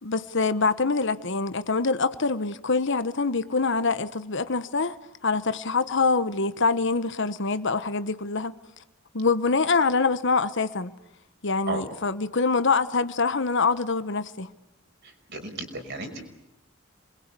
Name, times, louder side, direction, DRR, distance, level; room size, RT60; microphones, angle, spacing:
voice 1, 0.0-4.9 5.2-8.6 9.1-10.9 11.4-14.5, left 4 dB, 65° left, 1.2 m, -25 dB
voice 2, 15.0-16.2, right 2 dB, 60° right, 5.7 m, -34 dB
28.0 x 22.0 x 8.4 m
head